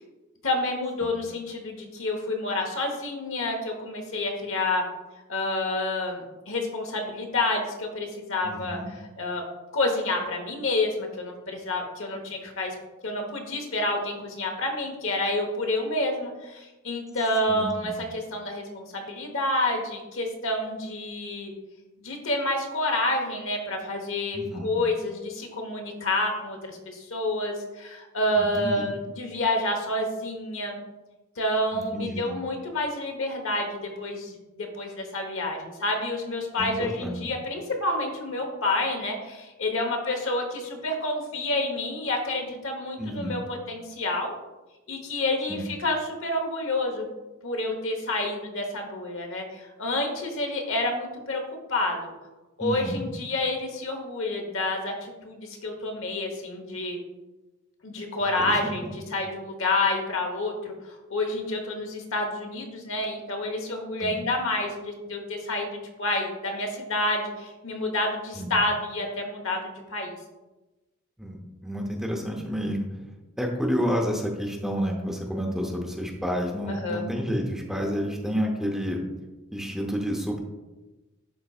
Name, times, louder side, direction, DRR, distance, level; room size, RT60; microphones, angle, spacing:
voice 1, 0.4-4.8 5.3-9.4 9.7-12.7 13.0-21.5 22.0-30.8 31.4-44.3 44.9-47.1 47.4-51.4 51.7-52.1 52.6-57.0 57.8-70.1 76.7-77.0, left 2 dB, 60° left, 2 dB, 1.1 m, -29 dB
voice 2, 8.4-8.8 17.5-18.0 24.3-24.7 28.4-28.9 31.7-32.3 36.6-37.2 43.0-43.3 45.5-45.6 52.6-53.0 58.4-58.9 64.0-64.1 68.3-68.5 71.2-72.9 73.4-79.0 79.5-80.4, equal, ahead, 0 dB, 0.7 m, -30 dB
11.0 x 4.0 x 2.4 m, 1.1 s
head